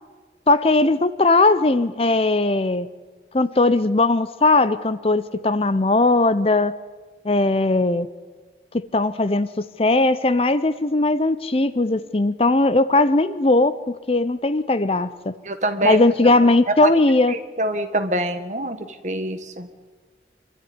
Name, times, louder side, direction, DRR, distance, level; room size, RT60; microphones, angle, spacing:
voice 1, 0.5-2.9 3.3-6.8 7.2-8.1 8.7-15.3 15.8-17.3, left 2 dB, 35° left, 15 dB, 0.6 m, -19 dB
voice 2, 15.4-16.0 16.8-16.9 17.3-18.8 19.0-19.7, right 1 dB, 40° right, 8 dB, 1.6 m, -25 dB
25.5 x 13.0 x 9.6 m, 1.4 s
head